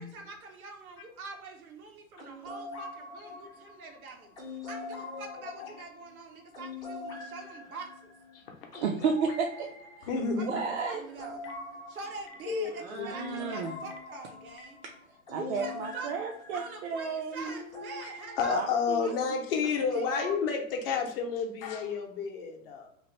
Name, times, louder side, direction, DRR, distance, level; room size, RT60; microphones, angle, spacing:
voice 1, 0.0-8.1 10.4-11.4 11.9-14.8 15.3-16.2 16.5-18.7 19.0-20.1, right 3 dB, 85° right, 2 dB, 0.8 m, -45 dB
sound 1, 2.2-18.5 19.6-20.4, left 2 dB, 10° left, 0.4 m, -44 dB
voice 2, 3.2-3.5 5.0-5.7 8.3-8.4 8.7-8.8 10.1-10.7 12.5-13.1 18.4-22.9, left 5 dB, 45° left, 3 dB, 0.7 m, -31 dB
voice 3, 8.8-9.7 10.0-10.1 10.4-11.0 12.8-13.8 14.8-14.9 15.3-17.6 18.5-19.2, right 5 dB, 55° right, 1 dB, 0.5 m, -33 dB
Telephone, 10.3-10.8 11.3-11.6 12.2-12.3 13.1-14.0 14.5-14.7, left 3 dB, 75° left, 0.7 m, -50 dB
3.0 x 2.0 x 3.0 m, 0.69 s
hypercardioid pair, 130°, 42 cm